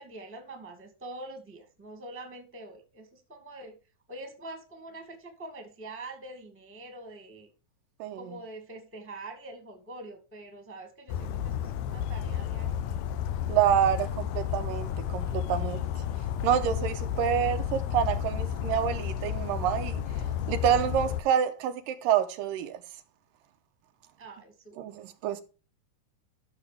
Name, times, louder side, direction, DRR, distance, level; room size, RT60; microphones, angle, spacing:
voice 1, 0.0-3.8 4.1-7.5 8.1-12.8 24.2-25.0, right 2 dB, 5° right, 1.4 m, -45 dB
Bird vocalization bird call bird song, 11.1-21.2, left 9 dB, 80° left, 2.1 m, -32 dB
voice 2, 13.5-15.9 16.4-20.0 20.5-22.8 24.8-25.4, right 9 dB, 80° right, 2.4 m, -27 dB
12.5 x 6.9 x 3.4 m
omnidirectional pair, 4.0 m